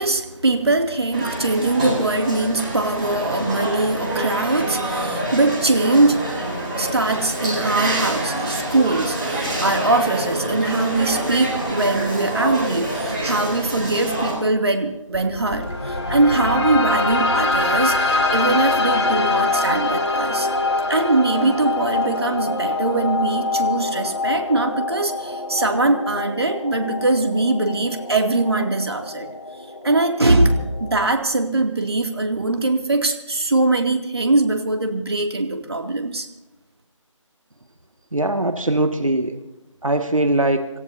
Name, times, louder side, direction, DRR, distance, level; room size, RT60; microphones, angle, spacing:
voice 1, 0.0-6.2 6.8-20.5 20.9-29.3 29.8-36.3, right 2 dB, 50° right, 3 dB, 2.6 m, -21 dB
sound 1, 1.1-14.3, right 1 dB, 10° right, 4.2 m, -26 dB
sound 2, 15.1-31.1, left 2 dB, 50° left, 3.3 m, -24 dB
voice 2, 38.1-39.4 39.8-40.7, right 1 dB, 85° right, 7 dB, 1.9 m, -21 dB
27.5 x 15.5 x 2.8 m, 1.0 s
figure-of-eight pair, 170°, 17 cm